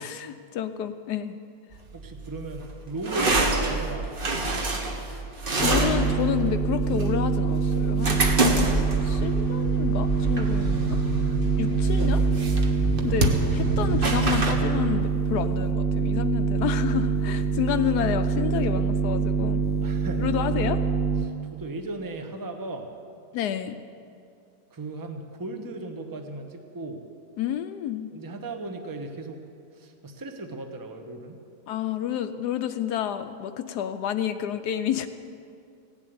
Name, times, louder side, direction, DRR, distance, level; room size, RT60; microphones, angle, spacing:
voice 1, 0.0-1.4 5.6-8.3 8.6-11.0 11.6-12.2 13.0-19.6 20.2-20.8 23.3-23.8 27.4-28.1 31.7-35.1, left 10 dB, 75° left, 9 dB, 1.1 m, -29 dB
sound 1, 1.7-14.5, right 2 dB, 35° right, 1.1 m, -27 dB
voice 2, 1.9-4.1 4.4-4.9 11.7-12.1 19.8-20.3 21.2-22.9 24.7-27.0 28.1-29.4 29.8-31.4, right 2 dB, 15° right, 5 dB, 0.7 m, -37 dB
sound 2, 5.6-21.2, right 5 dB, 15° left, 0.4 m, -25 dB
16.0 x 7.2 x 9.4 m, 2.4 s
omnidirectional pair, 1.8 m